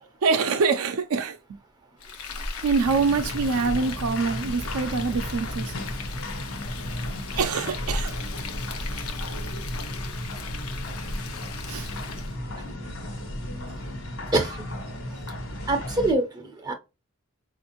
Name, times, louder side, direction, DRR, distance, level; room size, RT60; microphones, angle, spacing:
voice 1, 0.2-1.6 2.6-5.7 7.3-8.2 11.7-11.9, right 4 dB, 75° right, 0.4 m, -25 dB
Frying (food), 2.0-12.4, left 2 dB, 90° left, 0.7 m, -35 dB
sound 1, 2.8-16.1, left 1 dB, 70° left, 1.3 m, -35 dB
voice 2, 14.3-14.6 15.7-16.7, right 2 dB, 15° right, 0.4 m, -25 dB
4.3 x 2.5 x 2.9 m
head